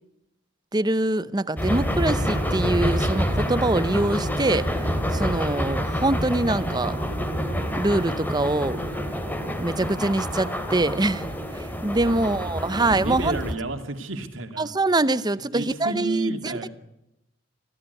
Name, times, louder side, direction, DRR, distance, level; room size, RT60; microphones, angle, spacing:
voice 1, 0.7-7.0 7.7-8.8 9.6-11.3 11.5-13.4 14.6-16.7, right 2 dB, 20° right, 0.7 m, -24 dB
sound 1, 1.6-13.5, equal, 10° left, 2.7 m, -27 dB
voice 2, 12.0-14.7 15.5-16.7, right 3 dB, 80° right, 2.7 m, -32 dB
26.0 x 16.5 x 8.3 m
head